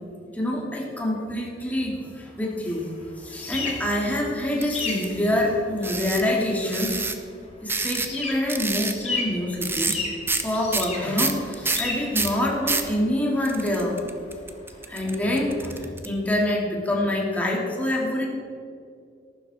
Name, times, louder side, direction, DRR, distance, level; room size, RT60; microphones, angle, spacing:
voice 1, 0.3-2.9 3.2-7.0 7.6-10.1 10.4-14.0 14.9-18.3, left 1 dB, 10° left, -3 dB, 2.4 m, -26 dB
sound 1, 2.7-15.8, left 3 dB, 35° left, 2.3 m, -36 dB
sound 2, 4.6-5.1 5.8-6.2 6.7-7.1 7.7-8.2 8.5-9.0 9.6-10.0 10.3-10.4 10.7-12.9 13.4-16.1, right 3 dB, 10° right, 0.8 m, -27 dB
14.0 x 12.0 x 4.3 m, 2.4 s
head